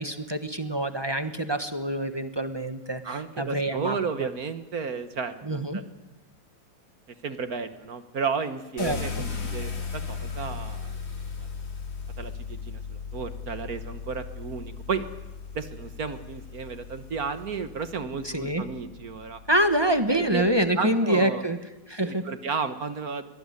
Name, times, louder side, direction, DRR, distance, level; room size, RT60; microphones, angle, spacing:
voice 1, 0.0-4.3 5.4-5.8 8.8-9.2 18.2-18.6 19.5-21.6 21.9-22.2, right 1 dB, 15° right, 8 dB, 1.1 m, -26 dB
voice 2, 3.0-5.8 7.2-10.9 12.2-15.1 15.5-19.4 20.1-20.4 20.8-21.4 22.0-23.3, right 5 dB, 55° right, 10 dB, 1.6 m, -33 dB
Car, 8.8-12.9 13.8-13.9 14.5-17.7, left 3 dB, 80° left, 4.1 m, -45 dB
sound 1, 8.9-20.7, left 5 dB, 45° left, 1.9 m, -38 dB
23.0 x 19.5 x 9.7 m, 1.1 s
omnidirectional pair, 2.0 m